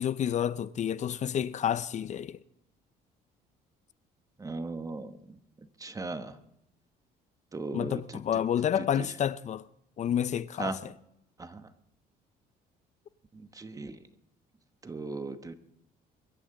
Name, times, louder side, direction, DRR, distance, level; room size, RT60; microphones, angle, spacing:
voice 1, 0.0-2.4 7.7-9.6 10.0-10.9, left 9 dB, 45° left, 0.5 m, -29 dB
voice 2, 4.4-5.4 5.8-6.3 7.5-8.2 8.8-9.1 10.6-10.8 11.4-11.7 13.3-14.0 14.8-15.6, right 3 dB, 20° right, 1.1 m, -37 dB
23.5 x 13.0 x 3.8 m
cardioid pair, 110°, 17 cm